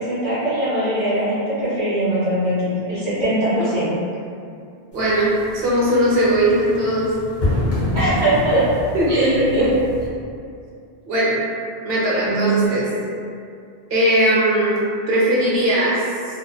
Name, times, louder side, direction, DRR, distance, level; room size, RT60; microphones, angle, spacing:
voice 1, 0.0-3.9 7.9-8.7 9.1-9.7 12.1-12.7, right 1 dB, 50° right, -15 dB, 1.1 m, -21 dB
sound 1, 4.9-10.1, left 1 dB, 30° left, 0.7 m, -27 dB
voice 2, 4.9-7.1 8.9-9.7 11.1-11.4 11.8-12.8 13.9-14.8 15.1-16.0, right 1 dB, 70° right, -6 dB, 0.8 m, -19 dB
2.7 x 2.0 x 2.2 m, 2.4 s
omnidirectional pair, 1.1 m